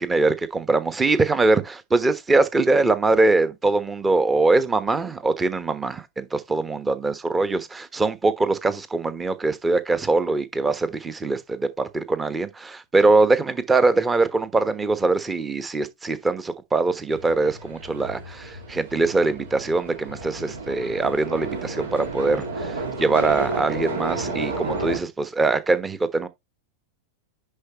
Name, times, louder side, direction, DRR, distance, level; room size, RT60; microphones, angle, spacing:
voice 1, 0.0-26.3, right 3 dB, 15° right, 1.2 m, -22 dB
sound 1, 17.1-25.0, right 2 dB, 65° right, 2.5 m, -32 dB
10.5 x 4.7 x 3.1 m
figure-of-eight pair, 90°, 0 cm